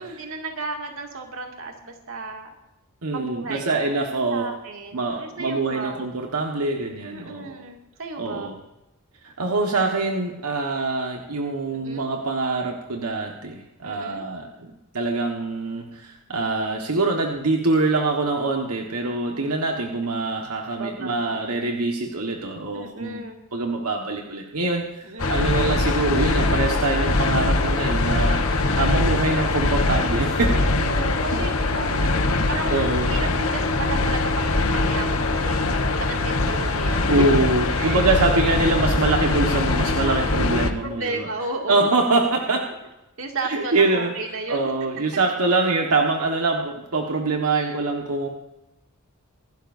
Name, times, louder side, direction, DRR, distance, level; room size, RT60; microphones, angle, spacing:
voice 1, 0.0-2.5 3.1-6.1 7.0-8.5 11.7-12.1 13.8-14.2 19.2-19.6 20.8-21.4 22.7-23.4 25.0-25.4 28.3-28.8 30.5-32.2 32.5-37.1 37.8-38.2 40.8-41.9 43.2-44.7 47.5-47.7, right 3 dB, 60° right, 2 dB, 2.4 m, -34 dB
voice 2, 3.0-4.5 4.9-7.6 8.2-8.5 9.2-23.2 23.5-28.4 28.7-30.5 32.7-33.1 37.1-41.3 41.7-42.6 43.5-44.1 44.5-48.3, right 3 dB, 85° right, 1 dB, 1.5 m, -24 dB
sound 1, 25.2-40.7, left 2 dB, 65° left, 1.2 m, -22 dB
25.0 x 12.0 x 2.7 m, 0.97 s
head